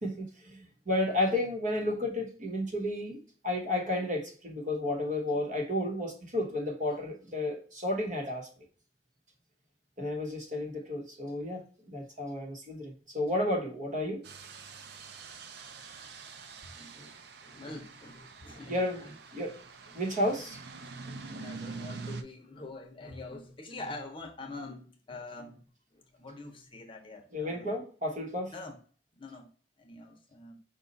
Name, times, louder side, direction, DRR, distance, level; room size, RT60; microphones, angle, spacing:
voice 1, 0.0-8.5 10.0-14.2 18.7-19.6 19.9-20.6 27.3-28.5, left 1 dB, 45° right, 1.2 m, -32 dB
sound 1, 14.2-22.2, right 4 dB, 65° right, 0.5 m, -45 dB
voice 2, 16.6-19.5 19.9-20.0 20.3-20.5 21.1-25.6 25.9-27.7 28.5-28.8 29.1-29.5 29.8-30.6, left 2 dB, 30° left, 0.8 m, -45 dB
5.3 x 2.4 x 3.9 m
head